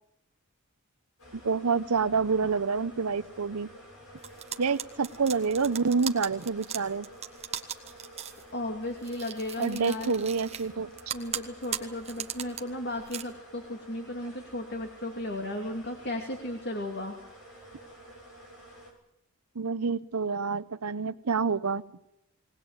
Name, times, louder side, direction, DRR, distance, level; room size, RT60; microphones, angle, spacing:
sound 1, 1.2-18.9, right 1 dB, 85° left, 6.6 m, -50 dB
voice 1, 1.4-3.7 4.6-7.1 9.6-10.9 19.5-21.8, right 5 dB, 85° right, 15 dB, 0.9 m, -27 dB
sound 2, 4.2-8.4 9.0-10.7 11.0-12.6 13.0-13.2, right 9 dB, 30° right, 1.4 m, -37 dB
voice 2, 8.5-10.2 11.1-17.2, left 1 dB, 50° left, 3 dB, 2.5 m, -35 dB
20.5 x 19.0 x 8.9 m, 0.84 s
head